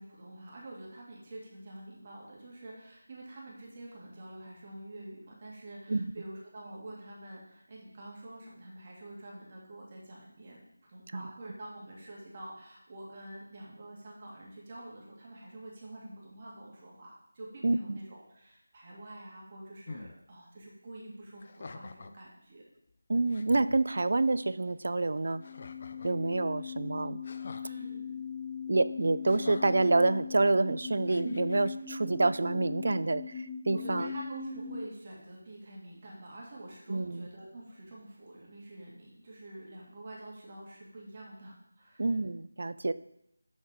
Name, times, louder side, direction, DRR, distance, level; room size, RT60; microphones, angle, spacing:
voice 1, 0.0-22.7 27.6-28.2 33.7-42.2, right 1 dB, 30° right, -4 dB, 2.1 m, -47 dB
voice 2, 17.6-18.0 23.1-25.4 26.0-27.2 28.7-34.1 36.9-37.3 42.0-42.9, right 2 dB, 55° right, 15 dB, 0.4 m, -28 dB
sound 1, 19.9-20.1 21.4-22.2 22.9-23.0 23.3-23.8 25.4-26.2 27.2-27.7 29.2-29.9 31.1-31.7, left 3 dB, 35° left, 0.5 m, -46 dB
sound 2, 25.2-34.8, left 6 dB, ahead, 0.7 m, -40 dB
7.3 x 6.3 x 4.8 m, 0.78 s
figure-of-eight pair, 170°, 0 cm